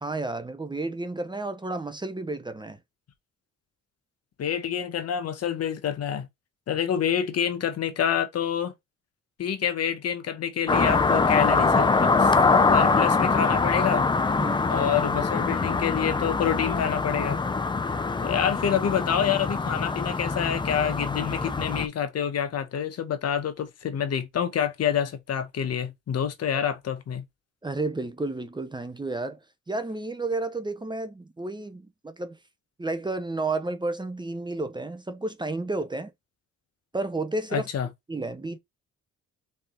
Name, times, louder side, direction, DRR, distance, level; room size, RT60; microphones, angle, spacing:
voice 1, 0.0-2.8 14.4-14.7 27.6-29.4 29.7-32.4 32.8-36.1 36.9-37.7 38.1-38.6, right 2 dB, 15° right, 0.8 m, -31 dB
voice 2, 4.4-6.3 6.7-8.7 9.4-12.3 12.7-14.1 14.7-17.4 18.2-27.2 37.5-37.9, left 8 dB, 55° left, 1.0 m, -27 dB
sound 1, 10.7-21.9, left 4 dB, 15° left, 0.5 m, -23 dB
4.0 x 3.6 x 3.8 m
cardioid pair, 90°, 30 cm